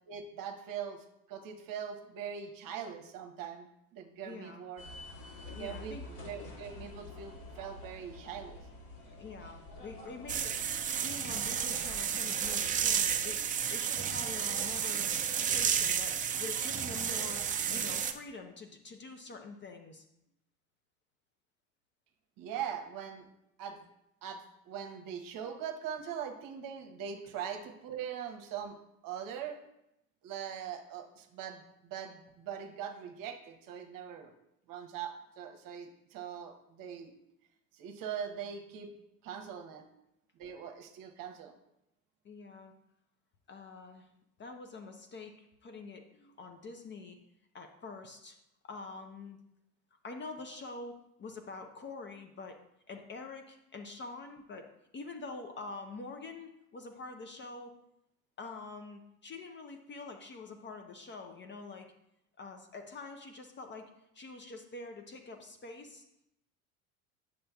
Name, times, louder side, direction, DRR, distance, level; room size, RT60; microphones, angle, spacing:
voice 1, 0.1-3.7 3.9-4.8 5.6-6.0 6.2-8.6 22.4-23.2 23.6-23.8 24.2-28.8 29.0-29.6 30.2-34.3 34.7-37.1 37.7-38.9 39.2-39.8 40.4-41.5, right 8 dB, 50° right, 5 dB, 1.0 m, -41 dB
voice 2, 4.2-4.6 5.5-6.1 9.2-10.7 11.0-15.1 15.4-20.0 42.2-42.7 43.5-44.1 44.4-47.2 47.5-48.4 48.6-49.4 50.0-52.6 52.9-54.7 54.9-57.7 58.4-61.9 62.4-66.0, left 3 dB, 25° left, 5 dB, 0.6 m, -46 dB
sound 1, 4.8-13.3, left 2 dB, 70° left, 2.3 m, -49 dB
sound 2, 10.3-18.1, right 8 dB, 20° right, 0.4 m, -32 dB
8.7 x 6.5 x 2.3 m, 0.83 s
hypercardioid pair, 80°, 44 cm